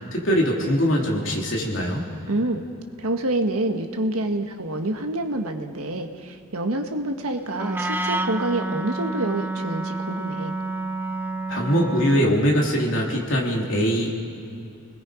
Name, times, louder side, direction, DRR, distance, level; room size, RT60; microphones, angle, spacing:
voice 1, 0.1-2.0 11.5-14.2, equal, 60° left, -1 dB, 3.3 m, -22 dB
voice 2, 2.3-2.6 3.0-10.6, right 1 dB, 85° right, 5 dB, 1.6 m, -27 dB
Wind instrument woodwind instrument, 7.5-12.4, right 2 dB, 10° right, 0.5 m, -29 dB
29.0 x 20.5 x 5.1 m, 2.5 s
head